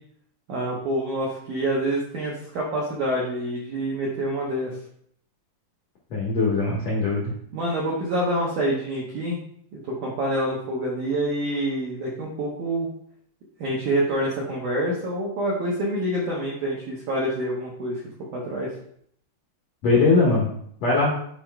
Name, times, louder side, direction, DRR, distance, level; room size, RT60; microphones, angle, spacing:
voice 1, 0.5-4.7 7.5-9.4 9.7-12.9 13.6-18.0 18.3-18.7, right 1 dB, 80° right, -4 dB, 1.8 m, -27 dB
voice 2, 6.1-7.3 19.8-20.5 20.8-21.1, left 3 dB, 75° left, -4 dB, 1.6 m, -20 dB
9.9 x 4.9 x 2.2 m, 0.66 s
omnidirectional pair, 5.0 m